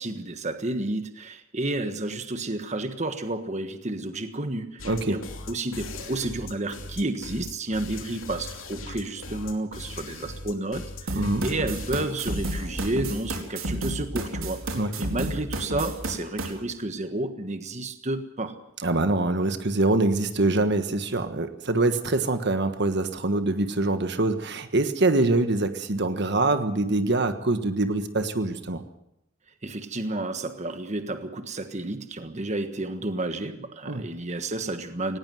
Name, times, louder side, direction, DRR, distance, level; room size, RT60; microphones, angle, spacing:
voice 1, 0.0-5.2 5.5-18.6 29.6-35.2, right 2 dB, 35° right, 8 dB, 1.4 m, -31 dB
sound 1, 4.8-13.2, left 2 dB, 80° left, 2.9 m, -39 dB
voice 2, 4.8-5.2 11.1-11.5 14.7-14.9 18.8-28.8 33.8-34.0, right 2 dB, 60° right, 8 dB, 1.4 m, -24 dB
sound 2, 11.1-16.5, right 1 dB, 85° right, 4.2 m, -31 dB
19.0 x 18.0 x 7.8 m, 0.81 s
head